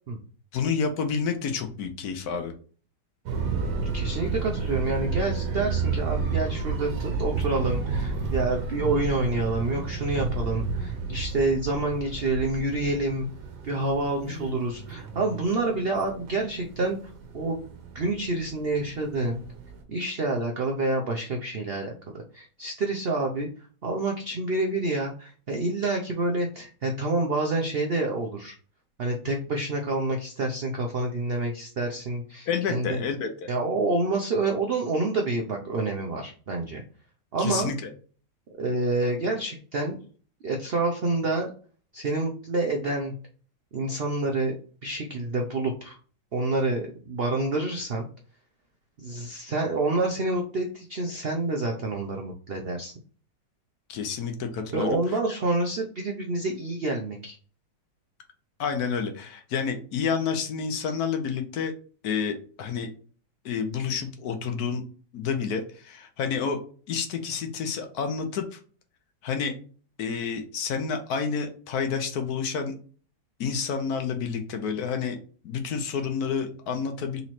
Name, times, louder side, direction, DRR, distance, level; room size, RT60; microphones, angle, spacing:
voice 1, 0.5-2.5 32.5-33.5 37.4-37.9 53.9-55.0 58.6-61.7 62.0-62.9 63.4-64.8 65.1-66.6 66.9-68.6 69.2-69.5 70.0-72.7 73.4-75.2 75.4-77.2, left 6 dB, 65° left, 6 dB, 1.1 m, -29 dB
sound 1, 3.3-19.8, right 4 dB, 70° right, 1.4 m, -31 dB
voice 2, 3.9-13.3 13.6-17.0 17.3-17.6 17.9-19.4 19.9-21.9 22.3-23.5 23.8-28.5 29.0-33.0 33.5-36.8 37.3-37.7 38.6-40.0 40.4-41.5 41.9-43.1 43.7-44.6 44.8-46.0 46.3-48.1 49.0-52.9 54.7-57.4, right 2 dB, 85° right, 2 dB, 0.5 m, -28 dB
4.0 x 3.1 x 4.1 m, 0.42 s
omnidirectional pair, 1.9 m